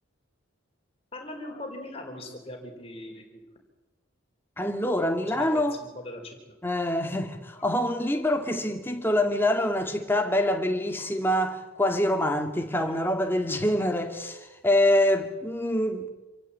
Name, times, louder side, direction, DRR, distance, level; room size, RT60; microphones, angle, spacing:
voice 1, 1.1-3.4 5.3-5.6 5.9-6.4 11.0-11.1 12.8-13.0, left 1 dB, 30° left, 4.7 m, -40 dB
voice 2, 4.6-5.8 6.6-16.1, left 1 dB, 10° left, 2.2 m, -25 dB
27.0 x 15.0 x 8.8 m
head